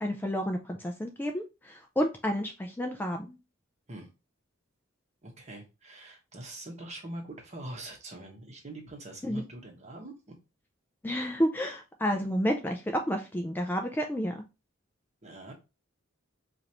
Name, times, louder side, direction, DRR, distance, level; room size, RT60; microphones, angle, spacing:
voice 1, 0.0-3.3 9.2-9.4 11.0-14.4, equal, 10° left, 3 dB, 0.4 m, -30 dB
voice 2, 5.2-10.3 15.2-15.5, right 1 dB, 35° right, 1 dB, 1.2 m, -43 dB
4.9 x 2.5 x 2.9 m, 0.27 s
head